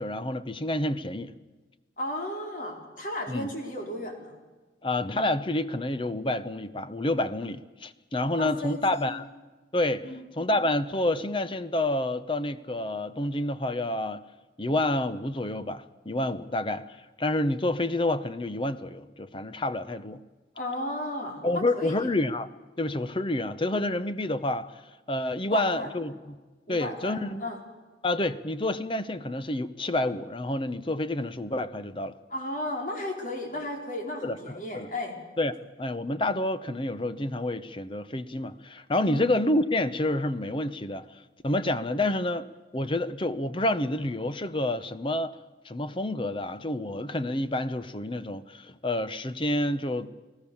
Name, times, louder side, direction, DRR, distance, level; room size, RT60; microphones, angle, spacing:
voice 1, 0.0-1.3 3.3-3.5 4.8-9.2 9.7-10.1 10.4-14.2 14.6-20.2 21.4-22.5 22.8-24.8 25.1-26.4 26.7-27.5 28.0-32.1 34.2-34.9 35.4-41.1 41.4-42.5 42.7-45.4 45.6-50.1, left 1 dB, 30° left, 13 dB, 0.8 m, -28 dB
voice 2, 2.0-4.4 8.4-9.2 10.0-10.2 20.5-21.9 25.5-25.9 26.7-27.6 32.3-35.1 39.0-39.3, left 1 dB, 45° left, 2 dB, 4.7 m, -34 dB
30.0 x 18.5 x 7.2 m, 1.2 s
head